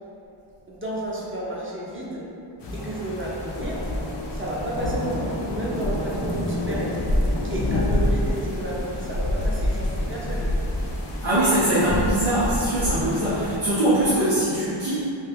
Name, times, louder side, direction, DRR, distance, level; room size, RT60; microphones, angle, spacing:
voice 1, 0.7-2.2 2.7-3.8 4.3-6.9 7.2-10.5, right 1 dB, 25° right, -6 dB, 0.7 m, -32 dB
sound 1, 2.6-13.6, left 1 dB, 60° left, 0.5 m, -27 dB
voice 2, 11.2-15.0, right 1 dB, 90° right, -12 dB, 0.8 m, -22 dB
3.2 x 2.8 x 2.4 m, 2.8 s
wide cardioid pair, 55°, 49 cm